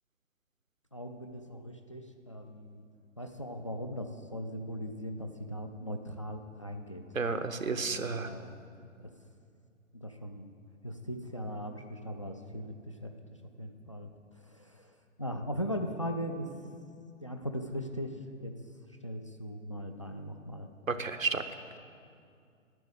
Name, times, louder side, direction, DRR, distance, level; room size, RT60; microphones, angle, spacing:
voice 1, 0.9-2.8 3.2-7.0 7.8-8.5 9.0-9.1 9.9-10.5 10.8-14.1 14.4-16.5 17.2-18.5 19.0-20.7, equal, 25° left, 4 dB, 0.3 m, -39 dB
voice 2, 7.1-8.3 20.9-21.4, right 4 dB, 90° right, 8 dB, 0.9 m, -31 dB
10.5 x 7.9 x 7.9 m, 2.3 s
figure-of-eight pair, 135°, 39 cm